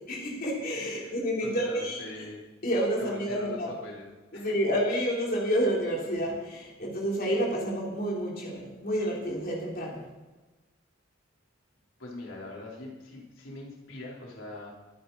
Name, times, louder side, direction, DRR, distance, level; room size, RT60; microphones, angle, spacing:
voice 1, 0.1-2.0 2.6-3.7 4.3-10.0, equal, 50° left, -3 dB, 3.8 m, -29 dB
voice 2, 0.8-1.2 1.4-2.4 3.0-4.1 4.3-4.5 12.0-14.7, left 2 dB, 85° left, -3 dB, 4.0 m, -42 dB
23.5 x 10.0 x 4.2 m, 1.2 s
head